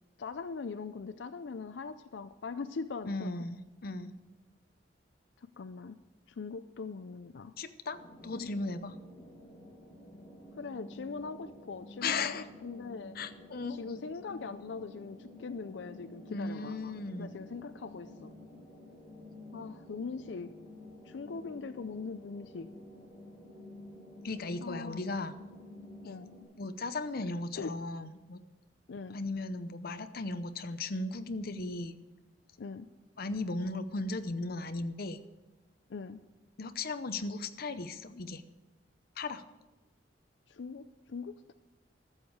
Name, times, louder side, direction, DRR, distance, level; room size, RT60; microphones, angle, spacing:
voice 1, 0.2-3.5 5.6-6.0 6.3-7.5 8.3-8.5 10.6-13.2 13.7-16.8 17.2-18.3 19.5-20.5 21.1-22.7 24.6-25.0 26.0-26.3 27.6-27.8 28.9-29.2 32.6-32.9 35.9-36.2 40.5-41.5, left 4 dB, 90° left, 12 dB, 0.5 m, -41 dB
voice 2, 3.1-4.1 7.6-8.0 8.2-9.0 12.0-12.5 13.1-13.8 16.3-17.3 24.2-25.4 26.6-28.4 29.1-31.9 33.2-35.2 36.6-38.4 39.2-39.4, left 3 dB, 60° left, 10 dB, 0.8 m, -36 dB
sound 1, 7.9-26.4, left 1 dB, ahead, 4.8 m, -51 dB
14.0 x 7.2 x 6.5 m, 1.1 s
head